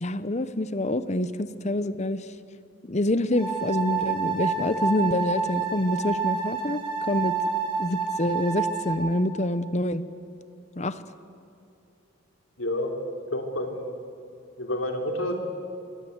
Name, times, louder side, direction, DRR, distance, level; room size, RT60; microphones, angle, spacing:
voice 1, 0.0-2.3 2.9-6.8 7.1-7.4 7.8-10.0 10.8-11.0, left 1 dB, 35° left, 14 dB, 0.8 m, -26 dB
sound 1, 3.3-8.9, right 5 dB, 25° right, 5.2 m, -28 dB
voice 2, 12.6-12.9 13.3-13.9 14.6-15.4, left 1 dB, 80° left, 3 dB, 3.3 m, -29 dB
25.5 x 23.0 x 8.1 m, 2.7 s
head